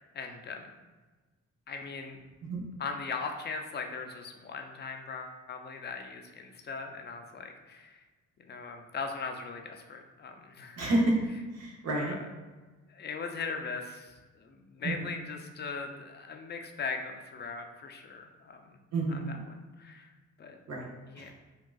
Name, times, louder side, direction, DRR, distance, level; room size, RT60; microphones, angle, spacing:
voice 1, 0.1-0.7 1.7-2.2 2.8-8.0 8.4-10.8 12.1-12.2 12.9-18.8 19.3-20.1 20.4-20.6 21.1-21.3, left 4 dB, 35° left, 4 dB, 0.4 m, -39 dB
voice 2, 10.8-11.2 11.5-12.1 14.8-15.1 18.9-19.4 20.7-20.9 21.2-21.3, right 1 dB, 60° right, -1 dB, 0.8 m, -29 dB
3.5 x 2.3 x 2.3 m, 1.3 s
cardioid pair, 90°, 30 cm